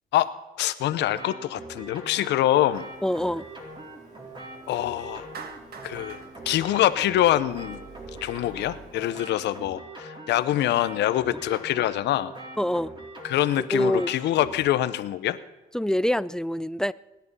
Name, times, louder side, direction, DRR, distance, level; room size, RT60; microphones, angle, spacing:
voice 1, 0.6-2.9 4.7-5.3 5.8-7.8 8.2-12.3 13.2-15.4, left 13 dB, 90° left, 0.9 m, -25 dB
sound 1, 0.9-14.6, right 2 dB, 25° right, 4.3 m, -43 dB
Printer, 2.7-9.0, right 2 dB, 45° right, 6.0 m, -48 dB
voice 2, 3.0-3.5 12.6-12.9 13.7-14.1 15.7-16.9, left 1 dB, 5° left, 0.4 m, -25 dB
Clapping, 5.3-7.6, right 6 dB, 65° right, 1.7 m, -44 dB
23.0 x 10.5 x 5.5 m
cardioid pair, 90°, 18 cm